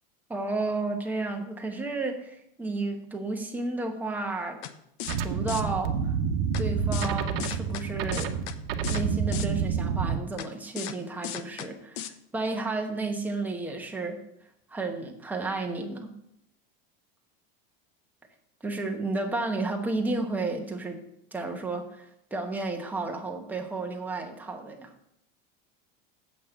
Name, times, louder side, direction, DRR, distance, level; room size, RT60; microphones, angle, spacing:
voice 1, 0.3-4.6 5.2-6.2 6.6-8.3 8.9-14.2 14.7-16.1 18.6-21.0 21.3-24.9, right 3 dB, 5° right, 2 dB, 1.1 m, -32 dB
sound 1, 4.6-4.7 5.0-5.2 5.5-5.6 6.5-6.6 6.9-7.1 7.4-7.8 8.1-8.5 8.8-9.0 9.3-9.5 10.4-10.5 10.8-10.9 11.2-11.7 12.0-12.1, left 11 dB, 55° left, 0.8 m, -35 dB
sound 2, 5.1-10.2, right 6 dB, 80° right, 1.0 m, -28 dB
8.2 x 5.5 x 7.8 m, 0.76 s
supercardioid pair, 160°, 29 cm